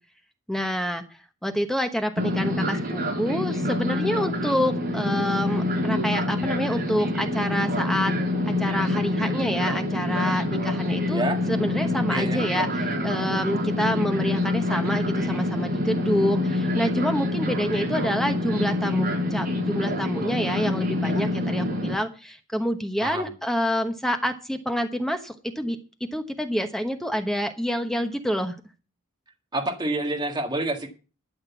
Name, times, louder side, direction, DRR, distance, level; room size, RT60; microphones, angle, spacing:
voice 1, 0.5-1.0 1.4-8.2 8.5-11.2 11.5-12.7 13.0-25.8 26.1-28.6, equal, ahead, 6 dB, 1.0 m, -27 dB
Fixed-wing aircraft airplane, 2.2-21.9, left 1 dB, 40° right, 5.1 m, -26 dB
voice 2, 12.1-12.4 23.0-23.3 29.5-30.9, right 2 dB, 20° right, 2 dB, 1.8 m, -27 dB
12.5 x 6.6 x 7.2 m, 0.34 s
head